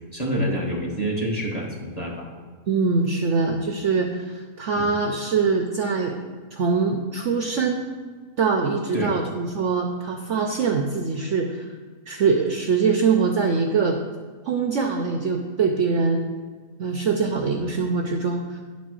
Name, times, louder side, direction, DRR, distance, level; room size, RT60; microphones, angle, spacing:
voice 1, 0.1-2.3 4.8-4.9 8.9-9.2, equal, 25° left, -3 dB, 1.3 m, -27 dB
voice 2, 2.7-6.2 6.5-7.9 8.4-11.7 12.1-14.0 14.5-16.2 16.8-18.6, right 4 dB, 60° right, 3 dB, 0.8 m, -23 dB
9.8 x 4.2 x 6.3 m, 1.5 s
omnidirectional pair, 1.7 m